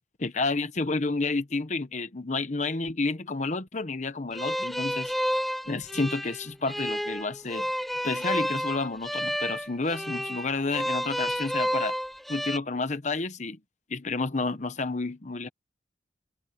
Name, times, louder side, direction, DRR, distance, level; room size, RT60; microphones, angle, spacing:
voice 1, 0.2-5.1 5.7-7.7 8.0-12.0 12.3-13.6 13.9-15.5, left 3 dB, 45° left, 1.0 m, -30 dB
sound 1, 4.3-12.6, equal, ahead, 0.7 m, -30 dB
head